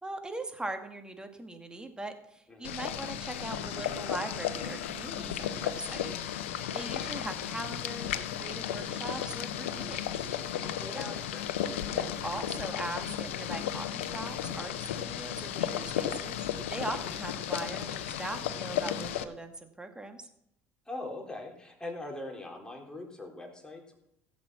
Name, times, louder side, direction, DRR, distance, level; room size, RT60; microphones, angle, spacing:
voice 1, 0.0-6.1 6.7-10.1 10.9-11.2 11.6-16.4 16.7-20.3, right 2 dB, 10° right, 6 dB, 2.3 m, -40 dB
voice 2, 2.5-2.8 10.8-11.6 20.9-24.0, left 2 dB, 10° left, 1 dB, 4.0 m, -42 dB
Boiling, 2.6-19.2, left 10 dB, 85° left, 0.8 m, -34 dB
16.0 x 7.5 x 6.1 m, 0.78 s
hypercardioid pair, 65°, 7 cm